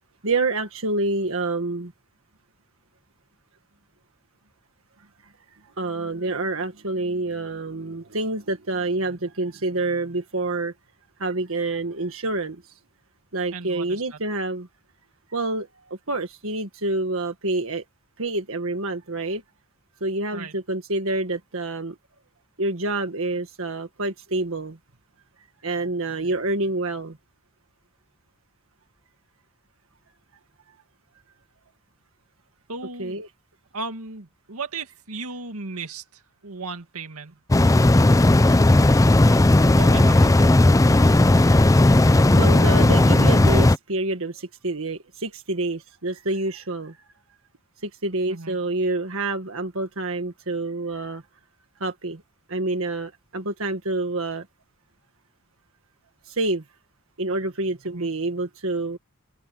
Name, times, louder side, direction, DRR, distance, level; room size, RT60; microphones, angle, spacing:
voice 1, 0.2-1.9 5.2-5.3 5.8-10.7 11.2-12.8 13.3-14.7 15.3-17.8 18.2-19.4 20.0-22.0 22.6-24.8 25.6-27.2 33.0-33.3 42.3-47.0 47.8-51.2 51.8-52.2 52.5-54.5 56.2-56.6 57.2-59.0, right 2 dB, 65° right, 1.7 m, -27 dB
voice 2, 13.5-14.2 20.3-20.5 32.7-33.2 33.7-37.4 39.7-40.6 48.3-48.6 57.9-58.1, right 4 dB, 85° right, 2.1 m, -36 dB
sound 1, 37.5-43.8, left 2 dB, 15° left, 0.4 m, -15 dB
head